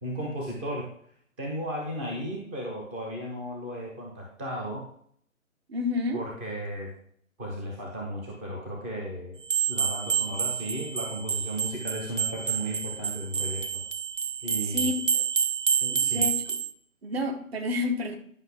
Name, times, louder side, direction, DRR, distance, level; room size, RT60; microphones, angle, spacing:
voice 1, 0.0-0.9 1.4-4.8 6.1-6.9 7.4-9.4 9.7-13.8 14.4-14.9 15.8-16.2, equal, 10° right, -2 dB, 0.6 m, -35 dB
voice 2, 5.7-6.2 14.7-15.2 15.9-16.6 17.0-18.1, left 3 dB, 50° right, 4 dB, 1.6 m, -30 dB
sound 1, 9.5-16.7, right 7 dB, 65° right, 1.2 m, -28 dB
10.5 x 5.5 x 3.7 m, 0.62 s
figure-of-eight pair, 135°, 41 cm